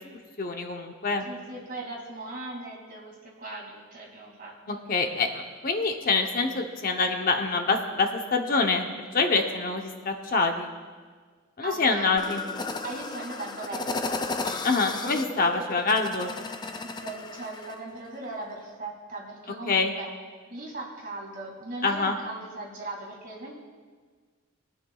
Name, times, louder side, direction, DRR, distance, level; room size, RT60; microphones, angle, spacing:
voice 1, 0.4-1.2 4.7-8.9 9.1-10.7 11.6-12.4 14.6-16.3 19.7-19.9 21.8-22.2, left 4 dB, 40° left, 4 dB, 0.8 m, -25 dB
voice 2, 1.3-4.6 11.6-12.2 12.8-14.2 16.8-20.1 20.5-23.5, right 2 dB, 40° right, -1 dB, 2.3 m, -38 dB
sound 1, 12.2-17.8, left 3 dB, 20° left, 0.4 m, -34 dB
21.5 x 9.3 x 2.3 m, 1.6 s
head